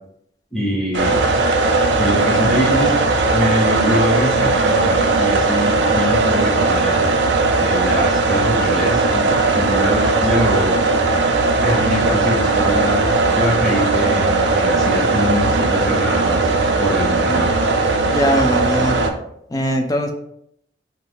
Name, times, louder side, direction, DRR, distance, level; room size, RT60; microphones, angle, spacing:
voice 1, 0.5-1.4 1.9-3.0 3.3-7.1 7.6-10.8 11.6-16.5 16.8-17.5, equal, ahead, -5 dB, 1.1 m, -23 dB
sound 1, 0.9-19.1, right 3 dB, 75° right, 0.5 m, -18 dB
voice 2, 18.1-19.0 19.5-20.1, equal, 20° left, 3 dB, 0.5 m, -20 dB
4.5 x 3.0 x 2.9 m, 0.74 s
head